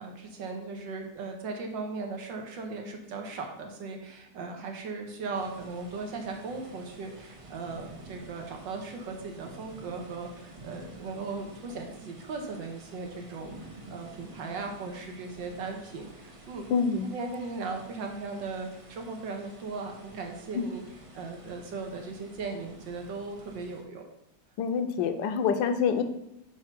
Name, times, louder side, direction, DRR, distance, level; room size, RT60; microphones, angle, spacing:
voice 1, 0.0-16.7 17.0-20.8 21.1-24.0, right 4 dB, 90° right, 3 dB, 1.8 m, -38 dB
sound 1, 5.3-23.8, right 2 dB, 50° right, 0.4 m, -50 dB
voice 2, 16.7-17.1 20.5-20.7 24.6-26.0, left 6 dB, 85° left, 8 dB, 1.3 m, -26 dB
4.7 x 4.6 x 5.8 m, 0.81 s
omnidirectional pair, 1.9 m